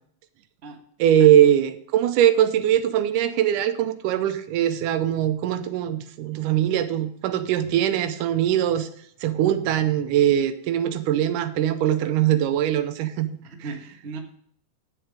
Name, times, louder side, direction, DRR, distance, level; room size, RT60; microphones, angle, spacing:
voice 1, 1.0-8.9 9.2-13.3, right 11 dB, 85° right, 10 dB, 2.3 m, -21 dB
voice 2, 13.4-14.2, right 4 dB, 65° right, 3 dB, 0.6 m, -36 dB
10.0 x 7.9 x 5.1 m, 0.63 s
omnidirectional pair, 3.6 m